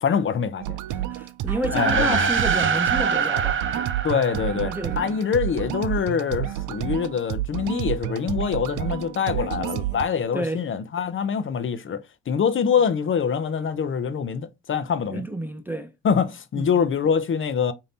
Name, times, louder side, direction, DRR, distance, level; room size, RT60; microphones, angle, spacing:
voice 1, 0.0-0.8 1.7-2.3 4.0-15.2 16.0-17.7, left 7 dB, 40° left, 0.6 m, -24 dB
sound 1, 0.6-10.0, right 13 dB, 80° right, 0.5 m, -29 dB
voice 2, 0.9-3.9 4.5-5.2 10.3-10.6 15.1-15.9 16.6-16.9, equal, 5° right, 0.4 m, -30 dB
sound 2, 1.6-5.3, right 6 dB, 40° right, 0.7 m, -25 dB
5.0 x 2.8 x 2.7 m
cardioid pair, 90°, 30 cm